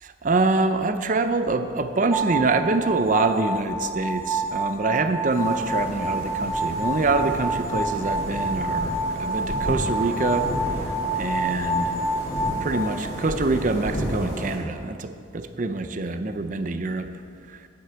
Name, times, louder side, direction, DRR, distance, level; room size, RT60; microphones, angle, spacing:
voice 1, 0.0-12.0 12.6-17.1 17.5-17.6, right 3 dB, 40° right, 9 dB, 0.5 m, -25 dB
sound 1, 2.1-12.5, right 1 dB, 10° right, 1.0 m, -28 dB
sound 2, 5.3-14.6, equal, 35° left, 2.8 m, -32 dB
9.5 x 8.1 x 7.7 m, 2.3 s
head